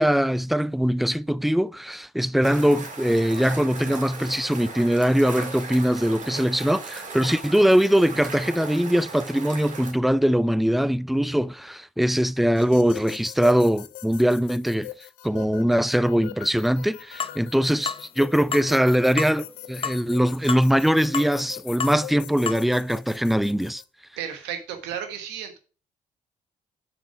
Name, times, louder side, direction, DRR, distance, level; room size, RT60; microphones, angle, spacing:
voice 1, 0.0-14.9 15.2-23.8, equal, ahead, 0.4 m, -22 dB
sound 1, 2.4-9.9, right 3 dB, 45° right, 2.1 m, -37 dB
sound 2, 12.6-23.8, left 15 dB, 75° left, 0.6 m, -42 dB
sound 3, 17.2-17.4 17.9-18.0 18.5-18.7 19.2-19.4 19.8-20.0 20.5-20.7 21.1-21.3 21.8-22.0 22.5-22.6, left 6 dB, 35° left, 0.7 m, -29 dB
voice 2, 24.2-25.6, right 9 dB, 75° right, 1.2 m, -33 dB
7.0 x 6.0 x 4.6 m
hypercardioid pair, 45°, 17 cm